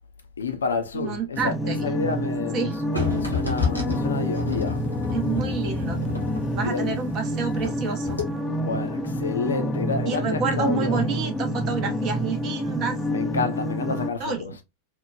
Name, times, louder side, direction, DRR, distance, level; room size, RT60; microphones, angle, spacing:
voice 1, 0.4-4.8 6.5-7.0 8.6-11.1 13.0-14.6, left 5 dB, 70° left, 0.5 m, -30 dB
voice 2, 0.9-1.9 2.5-2.7 5.1-6.0 6.5-8.2 10.0-13.0 14.2-14.6, right 6 dB, 35° right, 0.7 m, -29 dB
sound 1, 1.4-14.1, equal, 10° left, 0.4 m, -28 dB
sound 2, 2.9-7.8 8.1-8.2, left 5 dB, 85° left, 0.9 m, -30 dB
2.9 x 2.1 x 2.3 m
figure-of-eight pair, 90°, 0 cm